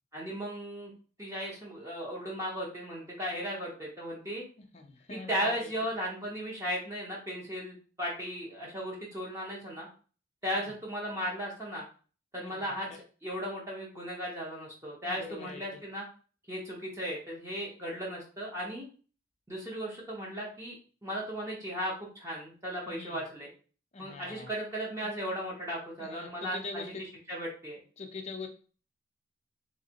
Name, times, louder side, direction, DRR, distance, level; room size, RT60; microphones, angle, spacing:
voice 1, 0.1-0.9 1.2-4.4 5.3-9.9 10.4-11.8 12.3-12.9 13.2-16.0 16.5-18.9 19.5-23.5 24.0-26.9 27.3-27.8, equal, 15° right, -4 dB, 0.9 m, -36 dB
voice 2, 4.7-5.7 10.6-10.7 12.3-13.0 15.0-15.8 22.9-23.2 23.9-24.5 26.0-27.0 28.0-28.5, left 3 dB, 35° left, 4 dB, 0.6 m, -43 dB
3.2 x 3.2 x 2.9 m, 0.39 s
head